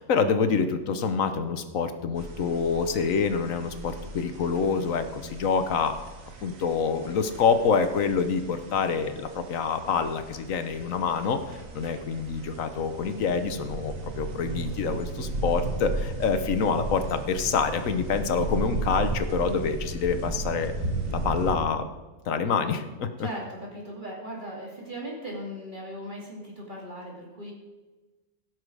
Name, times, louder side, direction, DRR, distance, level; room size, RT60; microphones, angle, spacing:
voice 1, 0.0-6.0 6.4-11.4 11.7-20.7 21.1-21.9 22.3-23.3, left 5 dB, 80° left, 9 dB, 1.3 m, -26 dB
sound 1, 2.2-21.5, right 2 dB, 80° right, 1.7 m, -35 dB
voice 2, 23.2-27.5, equal, 35° right, -3 dB, 2.7 m, -38 dB
17.0 x 6.2 x 4.8 m, 1.2 s
omnidirectional pair, 1.4 m